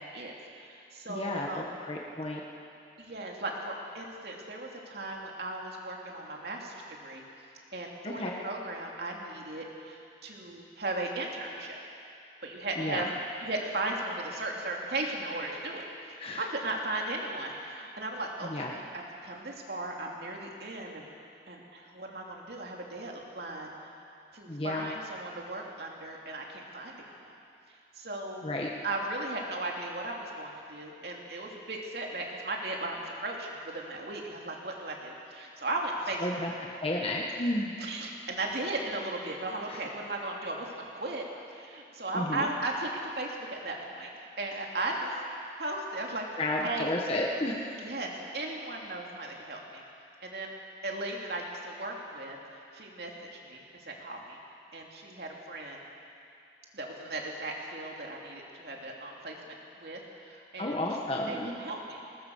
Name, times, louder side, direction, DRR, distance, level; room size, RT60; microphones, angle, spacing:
voice 1, 0.0-1.7 3.0-7.2 7.7-11.8 12.4-13.1 13.4-21.1 21.5-23.7 24.3-27.4 27.9-28.5 28.8-36.3 37.8-41.2 41.5-45.1 45.6-46.9 47.8-49.8 50.2-50.5 50.8-52.4 52.7-54.4 54.7-55.8 56.7-60.8 61.3-62.0, right 2 dB, 65° right, -1 dB, 2.9 m, -37 dB
voice 2, 1.1-2.4 8.0-8.3 12.8-13.1 16.2-16.4 18.4-18.7 24.5-24.9 28.4-28.7 36.2-36.5 36.8-37.7 39.7-39.8 42.1-42.5 46.4-47.8 60.6-61.5, left 1 dB, 35° left, -1 dB, 1.6 m, -32 dB
20.5 x 19.5 x 6.6 m, 2.6 s
head